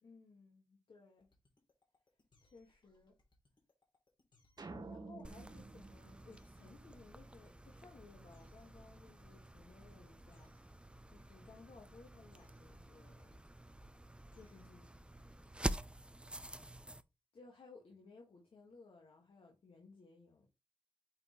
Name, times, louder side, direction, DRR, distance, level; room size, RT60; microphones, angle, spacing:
voice 1, 0.0-1.3 2.4-3.2 4.6-10.8 11.1-13.4 14.3-15.3 17.3-20.5, left 4 dB, 75° left, 1.7 m, -60 dB
sound 1, 1.2-16.8, left 3 dB, 60° left, 2.9 m, -74 dB
sound 2, 4.6-7.1, right 3 dB, 50° right, 1.2 m, -51 dB
sound 3, 5.2-17.0, right 1 dB, 10° right, 0.6 m, -48 dB
8.6 x 4.2 x 3.0 m
cardioid pair, 50°, 9 cm